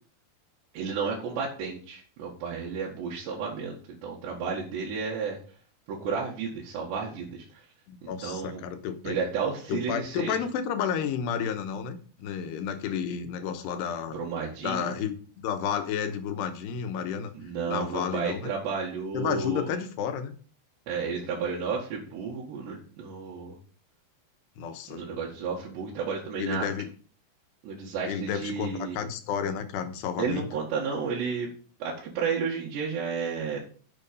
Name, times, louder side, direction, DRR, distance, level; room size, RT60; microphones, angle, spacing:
voice 1, 0.7-5.4 5.9-7.6 8.0-8.6 9.0-10.4 14.1-14.9 17.3-19.7 20.9-23.6 24.9-26.6 27.6-29.0 30.2-31.5 31.8-33.6, right 5 dB, 90° right, -4 dB, 4.1 m, -32 dB
voice 2, 7.9-9.1 9.7-14.2 14.6-17.3 17.7-18.5 19.1-20.3 24.6-25.0 26.4-26.9 28.1-30.5, left 8 dB, 80° left, 8 dB, 3.1 m, -31 dB
11.0 x 6.5 x 5.3 m, 0.42 s
omnidirectional pair, 4.8 m